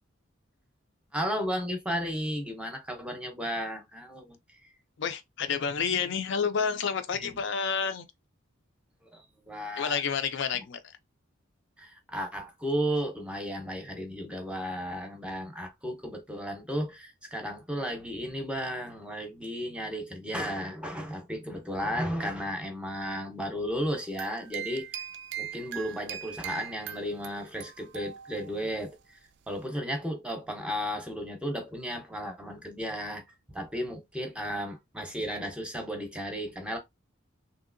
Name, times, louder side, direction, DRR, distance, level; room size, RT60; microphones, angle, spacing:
voice 1, 1.1-4.7 7.1-7.4 9.1-10.0 10.5-10.6 11.8-25.0 25.4-29.2 29.5-36.8, equal, 5° right, 0.6 m, -34 dB
voice 2, 5.0-8.1 9.8-11.0, left 6 dB, 60° left, 0.4 m, -29 dB
sound 1, 23.8-28.7, right 10 dB, 55° right, 0.3 m, -41 dB
3.0 x 2.7 x 2.5 m
head